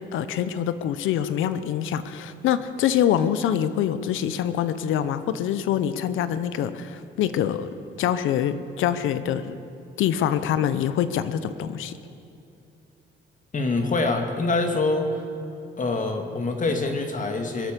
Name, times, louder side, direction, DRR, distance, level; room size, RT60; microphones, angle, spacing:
voice 1, 0.1-7.7 8.0-9.6 10.0-11.9, left 10 dB, 85° left, 13 dB, 0.8 m, -25 dB
voice 2, 13.5-15.1 15.8-17.7, left 3 dB, 40° left, 4 dB, 2.1 m, -25 dB
23.0 x 8.4 x 6.8 m, 2.7 s
cardioid pair, 90°, 20 cm